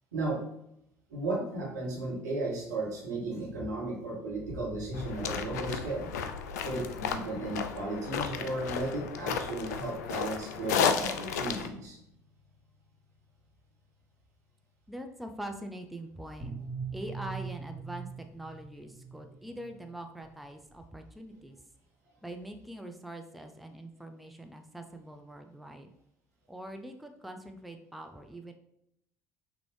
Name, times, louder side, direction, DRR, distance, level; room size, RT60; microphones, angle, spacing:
voice 1, 0.1-0.4 1.1-6.1 6.6-12.0, right 2 dB, 80° right, -5 dB, 1.5 m, -35 dB
sound 1, 4.3-14.4 16.4-21.5, right 4 dB, 50° right, 1.3 m, -46 dB
sound 2, 4.9-11.7, left 7 dB, 70° left, 0.4 m, -33 dB
voice 2, 14.9-16.6 16.9-21.6 22.2-25.9 26.5-28.5, right 1 dB, ahead, 4 dB, 0.5 m, -43 dB
5.9 x 2.6 x 3.2 m, 0.77 s
figure-of-eight pair, 60°, 9 cm